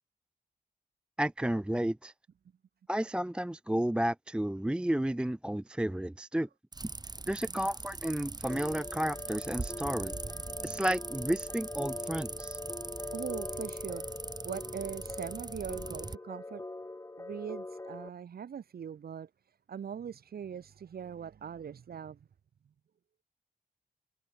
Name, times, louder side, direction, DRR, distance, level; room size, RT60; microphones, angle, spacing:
voice 1, 1.2-2.1 2.9-6.5 6.8-6.9 7.3-10.1 10.6-12.6, right 1 dB, 5° right, 0.5 m, -32 dB
sound 1, 6.7-16.2, right 3 dB, 25° right, 2.3 m, -41 dB
sound 2, 8.5-18.1, left 2 dB, 20° left, 2.2 m, -43 dB
voice 2, 13.1-14.2 14.4-16.6 17.2-22.3, right 8 dB, 80° right, 2.9 m, -41 dB
cardioid pair, 85°, 16 cm